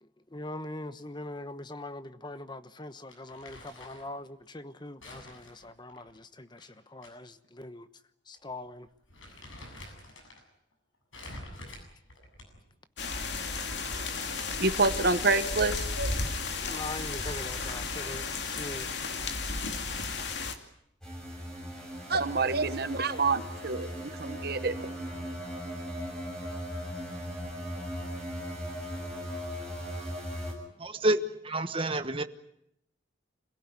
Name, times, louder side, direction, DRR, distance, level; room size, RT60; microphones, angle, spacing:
voice 1, 0.0-7.9 8.3-8.9 16.6-18.9, left 2 dB, 20° left, 1.1 m, -42 dB
Crumpling crinkling, 3.1-4.1 5.0-7.1 7.4-7.5 8.3-8.5 8.9-10.4 11.1-12.7, left 1 dB, 85° left, 7.7 m, -48 dB
sound 1, 13.0-20.5, left 4 dB, 60° left, 2.5 m, -33 dB
voice 2, 14.2-16.1 22.1-24.9, right 3 dB, 55° right, 1.3 m, -28 dB
sound 2, 21.0-30.5, equal, 5° left, 6.9 m, -38 dB
voice 3, 30.8-32.2, right 1 dB, 25° right, 1.1 m, -28 dB
27.0 x 17.0 x 9.8 m
head